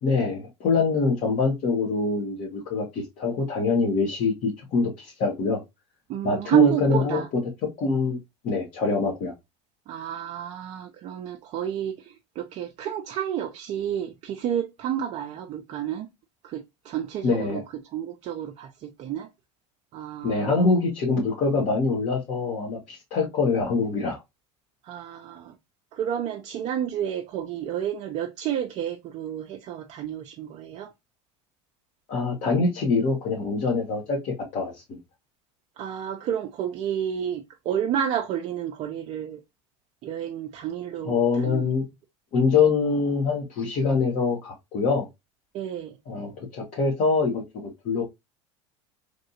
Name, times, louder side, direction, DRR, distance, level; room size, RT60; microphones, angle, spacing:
voice 1, 0.0-5.6 6.2-7.2 7.8-8.2 8.4-9.3 17.2-17.6 20.2-24.2 32.1-35.0 41.0-41.8 42.3-45.1 46.1-48.0, left 4 dB, 55° left, 1.3 m, -24 dB
voice 2, 6.1-7.3 9.9-16.1 16.4-17.6 17.9-19.3 19.9-20.7 24.8-25.5 25.9-30.9 35.8-39.4 40.0-41.7 45.5-46.0, right 10 dB, 50° right, 0.6 m, -30 dB
3.3 x 2.6 x 2.8 m
supercardioid pair, 95°, 15 cm